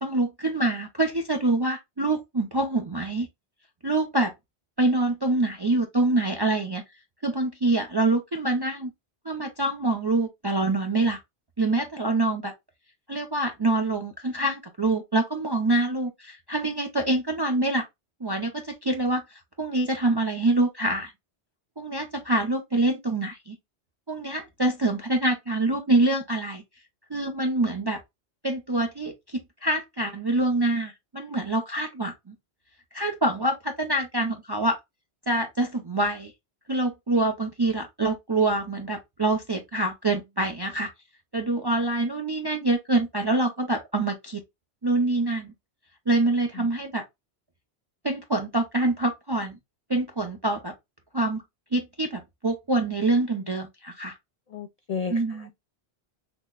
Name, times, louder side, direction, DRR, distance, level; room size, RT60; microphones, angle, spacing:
voice 1, 0.0-3.3 3.8-4.3 4.8-6.8 7.2-8.9 9.2-11.2 11.6-12.5 13.1-17.8 18.2-21.1 21.8-23.6 24.1-26.6 27.1-28.0 28.4-32.3 32.9-34.8 35.3-36.3 36.7-40.9 41.3-44.4 44.8-45.5 46.1-47.0 48.0-49.6 49.9-50.7 51.1-51.4 51.7-54.1 55.1-55.5, right 2 dB, 30° right, 0.5 m, -25 dB
voice 2, 54.5-55.6, left 5 dB, 55° left, 0.4 m, -34 dB
5.9 x 2.1 x 2.2 m
omnidirectional pair, 1.1 m